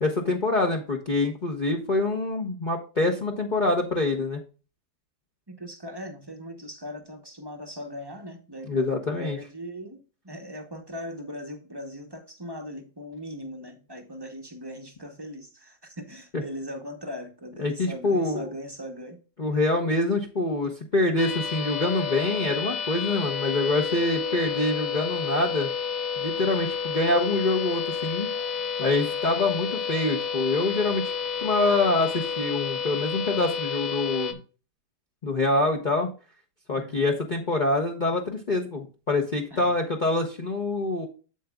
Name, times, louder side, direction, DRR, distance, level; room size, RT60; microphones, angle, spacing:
voice 1, 0.0-4.4 8.7-9.4 16.3-16.4 17.6-18.5 19.4-25.7 26.2-28.3 28.8-31.1 31.4-34.4 35.2-36.1 36.7-41.1, left 2 dB, 35° left, 0.9 m, -25 dB
voice 2, 5.5-19.2 36.8-37.1 39.5-39.7, equal, 20° right, 0.8 m, -39 dB
sound 1, 21.2-34.3, left 6 dB, 60° left, 1.1 m, -30 dB
8.0 x 7.7 x 2.3 m
omnidirectional pair, 1.8 m